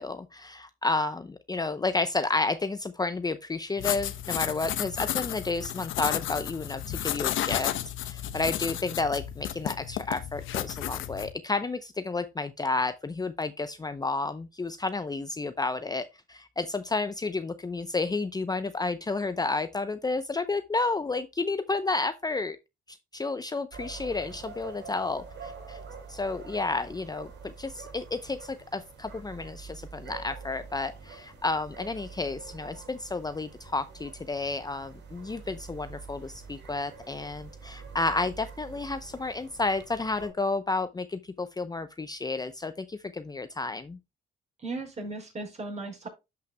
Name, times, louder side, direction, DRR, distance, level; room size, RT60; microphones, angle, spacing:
voice 1, 0.0-7.7 8.0-22.6 22.9-25.8 26.1-44.0, left 3 dB, 20° left, 0.6 m, -31 dB
sound 1, 3.8-11.3, left 12 dB, 85° left, 0.9 m, -32 dB
sound 2, 23.7-40.3, right 5 dB, 65° right, 4.2 m, -46 dB
voice 2, 44.6-46.1, right 2 dB, 35° right, 5.2 m, -36 dB
12.5 x 5.7 x 2.2 m
cardioid pair, 90°, 20 cm